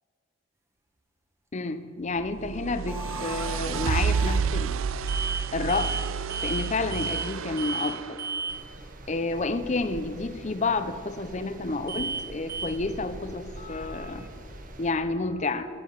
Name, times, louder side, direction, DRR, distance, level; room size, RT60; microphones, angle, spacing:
voice 1, 1.5-4.8 5.5-6.0 6.4-8.2 9.1-14.3 14.8-15.7, left 3 dB, 35° left, 11 dB, 0.6 m, -30 dB
sound 1, 2.2-8.3, right 6 dB, 75° right, 0.4 m, -30 dB
sound 2, 2.9-4.4 5.1-5.4 5.7-6.0 6.3-6.7 6.9-7.3 7.6-7.9 8.2-8.6 11.9-12.2 12.5-12.7, right 4 dB, 15° right, 1.1 m, -33 dB
sound 3, 8.5-14.9, right 1 dB, 40° right, 1.0 m, -44 dB
18.5 x 9.6 x 5.6 m, 2.5 s
head